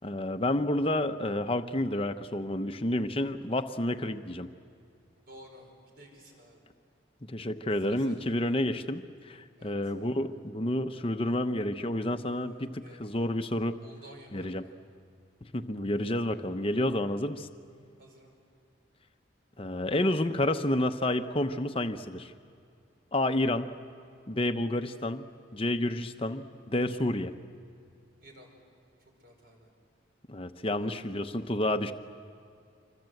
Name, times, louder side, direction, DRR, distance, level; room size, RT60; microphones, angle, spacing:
voice 1, 0.0-4.5 7.3-13.8 14.3-14.6 15.5-17.5 19.6-22.3 23.1-23.7 24.3-25.3 25.5-27.3 30.3-31.9, left 1 dB, 30° left, 8 dB, 0.9 m, -30 dB
voice 2, 5.3-6.6 7.8-8.4 9.6-9.9 12.3-13.1 13.8-14.7 18.0-18.3 28.2-28.5 29.2-29.7 30.7-30.9, equal, 50° right, 2 dB, 5.1 m, -53 dB
26.0 x 24.5 x 7.9 m, 2.4 s
head